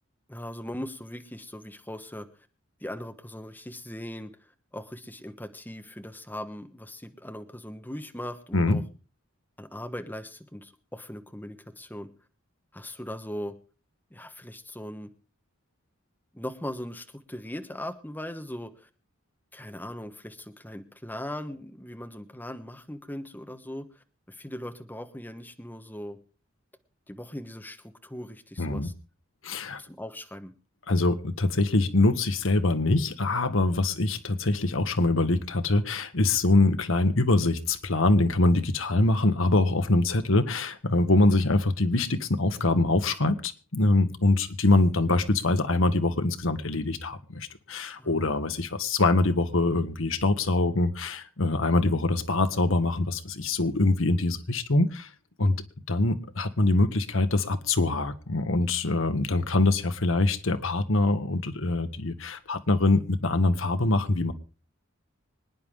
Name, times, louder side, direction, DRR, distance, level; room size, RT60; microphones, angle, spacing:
voice 1, 0.3-2.3 2.8-4.3 4.7-8.8 9.6-12.1 12.7-13.6 14.1-15.1 16.3-18.9 19.5-26.2 27.1-28.9 29.8-30.5 48.0-48.1, left 1 dB, 10° left, 7 dB, 1.2 m, -39 dB
voice 2, 28.6-28.9 29.4-29.8 30.9-55.1 55.4-55.5 55.9-64.3, left 2 dB, 70° left, 10 dB, 1.2 m, -24 dB
25.5 x 9.9 x 3.6 m, 0.36 s
head